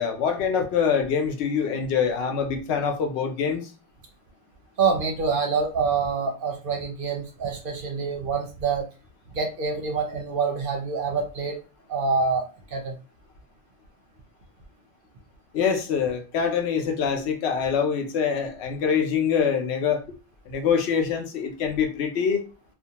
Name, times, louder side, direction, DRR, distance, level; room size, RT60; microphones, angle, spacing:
voice 1, 0.0-3.7 15.5-20.0 20.5-22.4, left 6 dB, 70° left, 0.8 m, -24 dB
voice 2, 4.8-8.9 9.3-11.6 11.9-13.0, right 5 dB, 60° right, 0.7 m, -26 dB
2.5 x 2.1 x 2.8 m
omnidirectional pair, 1.2 m